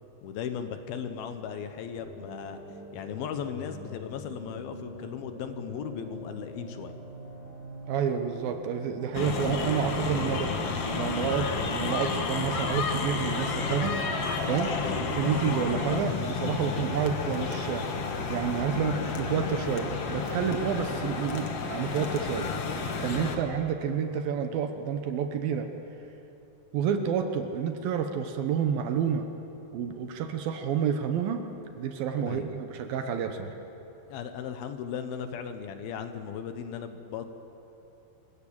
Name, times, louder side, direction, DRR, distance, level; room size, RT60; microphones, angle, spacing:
voice 1, 0.2-2.6 2.9-7.0 14.8-15.0 23.3-23.5 32.2-32.5 34.1-37.3, left 7 dB, 70° left, 8 dB, 2.8 m, -37 dB
sound 1, 2.0-10.0, equal, 55° right, 4.6 m, -44 dB
voice 2, 7.9-10.5 10.9-14.0 14.5-14.7 15.0-17.9 18.3-22.5 23.0-25.7 26.7-29.3 29.7-31.5 31.8-33.6, right 7 dB, 70° right, 6 dB, 2.6 m, -29 dB
sound 2, 9.1-23.4, left 4 dB, 50° left, 1.8 m, -31 dB
25.5 x 16.0 x 8.8 m, 2.9 s
omnidirectional pair, 4.8 m